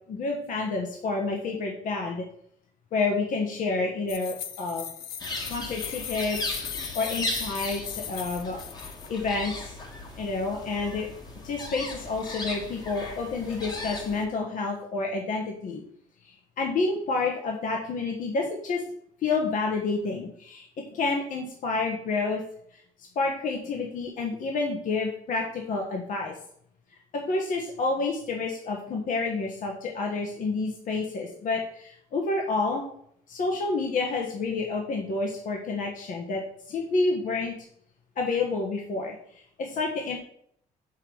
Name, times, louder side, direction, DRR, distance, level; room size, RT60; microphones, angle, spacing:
voice 1, 0.1-2.2 2.9-4.9 5.5-6.4 6.9-8.6 9.1-9.8 10.2-11.1 11.4-15.8 16.6-18.8 19.2-22.4 23.1-26.3 27.1-32.8 33.3-36.4 36.7-37.5 38.2-40.2, left 3 dB, 55° left, 0 dB, 1.4 m, -29 dB
sound 1, 4.1-9.1, left 9 dB, 70° left, 0.7 m, -38 dB
sound 2, 5.2-14.3, left 2 dB, 25° left, 1.6 m, -37 dB
6.3 x 5.5 x 5.4 m, 0.67 s
cardioid pair, 130°, 16 cm